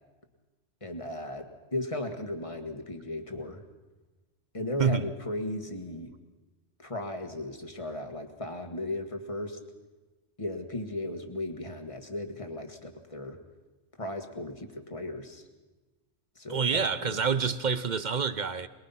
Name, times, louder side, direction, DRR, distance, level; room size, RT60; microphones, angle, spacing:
voice 1, 0.8-3.6 4.5-6.1 6.8-9.6 10.4-13.4 14.0-15.5 16.4-17.2, left 1 dB, 30° left, 1.8 m, -36 dB
voice 2, 16.5-18.7, right 6 dB, 45° right, 0.8 m, -27 dB
23.0 x 21.5 x 5.7 m
omnidirectional pair, 1.2 m